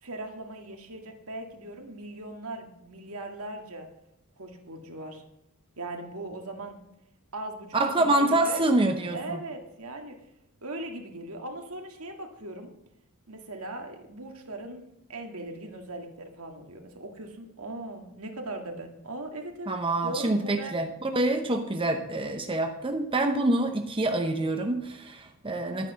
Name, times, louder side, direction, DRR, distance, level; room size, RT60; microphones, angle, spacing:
voice 1, 0.0-3.9 4.4-5.2 5.8-6.8 7.3-8.7 9.1-10.2 10.6-12.7 13.3-20.8, right 2 dB, 70° right, 3 dB, 2.0 m, -39 dB
voice 2, 7.7-9.4 19.7-25.9, right 2 dB, 25° right, 5 dB, 0.8 m, -26 dB
11.5 x 9.5 x 6.3 m, 0.84 s
head